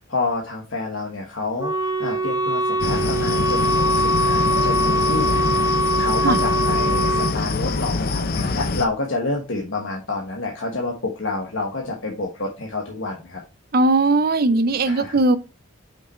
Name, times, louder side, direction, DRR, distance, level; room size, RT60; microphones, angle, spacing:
voice 1, 0.0-1.7 2.0-13.4 14.9-15.2, left 3 dB, 70° left, 1.2 m, -29 dB
Wind instrument woodwind instrument, 1.6-7.4, equal, 15° right, 0.8 m, -22 dB
sound 1, 2.8-8.9, left 3 dB, 45° left, 0.6 m, -25 dB
voice 2, 13.7-15.4, right 2 dB, 45° right, 0.5 m, -18 dB
6.0 x 5.3 x 4.2 m
head